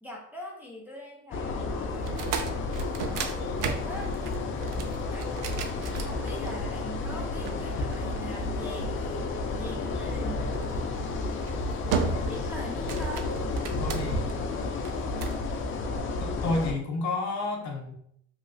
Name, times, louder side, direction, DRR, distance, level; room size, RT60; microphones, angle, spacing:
voice 1, 0.0-2.5 3.0-4.2 5.1-5.3 5.9-9.2 9.6-10.6 12.2-13.6, equal, 5° right, -3 dB, 0.6 m, -43 dB
sound 1, 1.3-16.7, left 3 dB, 40° left, 0.5 m, -31 dB
sound 2, 2.0-6.7 7.4-8.8 10.5-10.8 11.3-11.6 11.9-12.5 12.7-14.3 14.8-15.4, right 6 dB, 75° right, 0.5 m, -34 dB
voice 2, 13.8-14.4 16.2-17.9, left 2 dB, 65° left, 2 dB, 0.8 m, -30 dB
3.1 x 2.8 x 2.6 m, 0.68 s
cardioid pair, 115°, 31 cm